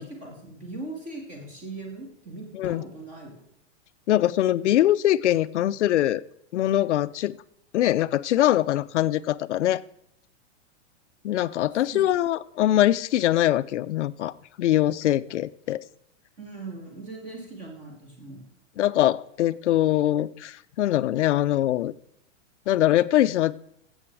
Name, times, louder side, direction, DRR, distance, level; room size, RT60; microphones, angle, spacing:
voice 1, 0.0-3.5 11.9-12.0 16.4-18.5, right 2 dB, 20° right, 0 dB, 2.6 m, -40 dB
voice 2, 4.1-6.2 6.5-7.4 7.7-9.8 11.2-15.8 18.8-21.9 22.7-23.5, left 13 dB, 70° left, 15 dB, 0.7 m, -23 dB
15.0 x 8.1 x 4.8 m, 0.75 s
supercardioid pair, 175°, 37 cm